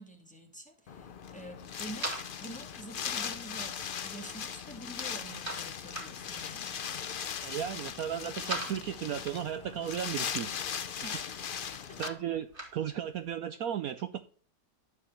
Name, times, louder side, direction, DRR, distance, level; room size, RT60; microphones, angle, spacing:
voice 1, 0.0-2.1 2.4-3.8 4.0-6.7 11.0-11.2 11.7-12.0, right 1 dB, 5° left, 1.7 m, -47 dB
Wind, 0.9-12.1, left 7 dB, 75° left, 0.4 m, -39 dB
sound 1, 1.4-13.3, right 1 dB, 30° right, 2.7 m, -45 dB
voice 2, 7.4-11.2 12.0-12.5 12.7-14.2, right 9 dB, 65° right, 1.0 m, -35 dB
12.0 x 4.8 x 7.0 m
omnidirectional pair, 1.9 m